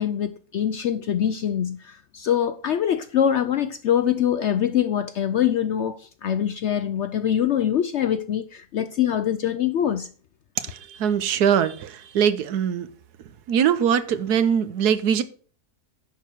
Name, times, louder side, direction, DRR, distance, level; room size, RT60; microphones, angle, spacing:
voice 1, 0.0-10.1, left 9 dB, 70° left, 0.7 m, -24 dB
voice 2, 10.6-12.9 13.5-15.2, right 8 dB, 80° right, 1.4 m, -22 dB
10.5 x 4.7 x 6.4 m
omnidirectional pair, 1.7 m